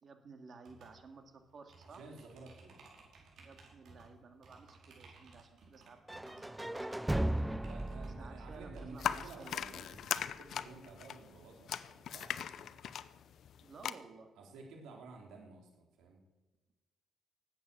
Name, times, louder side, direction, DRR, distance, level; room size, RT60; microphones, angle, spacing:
voice 1, 0.0-2.0 3.4-7.1 8.2-9.6 13.6-14.3, right 4 dB, 45° right, 6 dB, 2.1 m, -55 dB
sound 1, 0.6-10.0, right 3 dB, 70° right, 5.1 m, -60 dB
voice 2, 1.8-3.0 7.6-12.7 14.4-16.2, right 3 dB, 85° right, 1 dB, 3.5 m, -53 dB
sound 2, 6.1-10.0, right 1 dB, 10° right, 0.4 m, -37 dB
sound 3, 9.0-13.9, left 9 dB, 65° left, 0.6 m, -39 dB
19.0 x 8.5 x 7.1 m, 1.2 s
cardioid pair, 90°, 0 cm